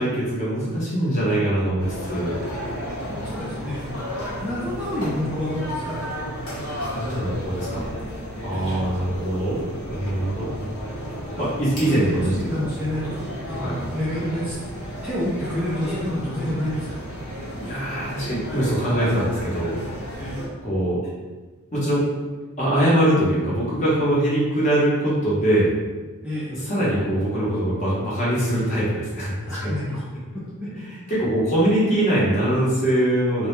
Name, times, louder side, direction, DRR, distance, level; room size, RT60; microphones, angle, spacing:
voice 1, 0.0-2.4 6.7-7.9 8.4-10.5 11.4-12.5 13.6-13.8 17.5-19.8 20.6-21.0 21.7-22.1 22.6-25.7 26.5-29.7 31.1-33.5, right 1 dB, 35° left, -8 dB, 0.8 m, -22 dB
sound 1, 1.8-20.5, equal, 80° left, 0.9 m, -33 dB
voice 2, 3.0-3.9 4.4-6.0 8.5-8.8 11.8-17.0 19.8-20.4 26.2-26.5 29.4-30.1 30.3-30.7, left 1 dB, 5° right, -10 dB, 0.3 m, -29 dB
2.2 x 2.1 x 3.0 m, 1.3 s
head